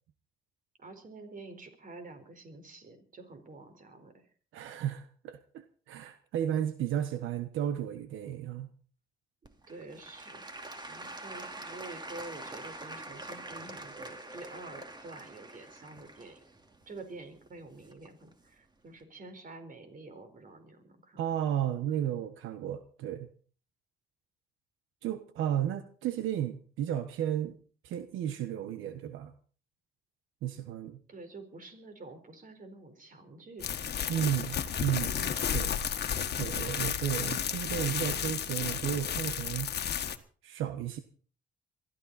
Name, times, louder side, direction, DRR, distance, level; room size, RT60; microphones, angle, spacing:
voice 1, 0.8-4.2 9.4-10.4 10.9-16.5 16.9-21.2 22.0-22.1 31.1-34.4, right 3 dB, 45° right, 7 dB, 4.7 m, -48 dB
voice 2, 4.5-8.7 21.2-23.3 25.0-27.6 27.8-29.3 30.4-31.0 34.1-35.8 36.2-39.7 40.4-41.0, right 10 dB, 90° right, 9 dB, 1.2 m, -33 dB
Applause / Crowd, 9.4-18.3 18.9-19.0, right 2 dB, 20° right, 2.5 m, -45 dB
sound 1, 33.6-40.2, left 8 dB, 55° left, 1.6 m, -32 dB
23.0 x 14.5 x 4.2 m, 0.42 s
cardioid pair, 90°, 20 cm